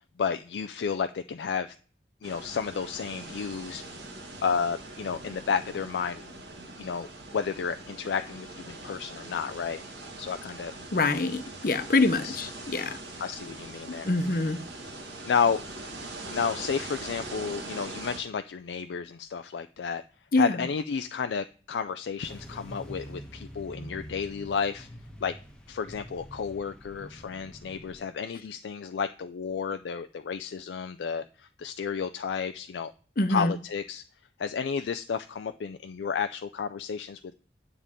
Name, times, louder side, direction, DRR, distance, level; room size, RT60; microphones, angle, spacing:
voice 1, 0.2-1.7 2.2-3.8 4.4-6.2 6.8-9.8 10.2-10.7 12.2-12.4 13.2-14.1 15.2-15.6 16.3-20.0 20.4-24.9 25.2-25.4 25.7-32.9 33.3-34.0 34.4-37.2, left 6 dB, 80° left, 0.4 m, -31 dB
sound 1, 2.2-18.2, right 2 dB, 85° right, 1.9 m, -42 dB
voice 2, 10.9-13.0 13.9-14.6 20.3-20.6 33.2-33.5, left 2 dB, 55° left, 0.8 m, -25 dB
sound 2, 22.2-28.0, equal, 5° left, 1.1 m, -45 dB
9.7 x 6.8 x 3.6 m
head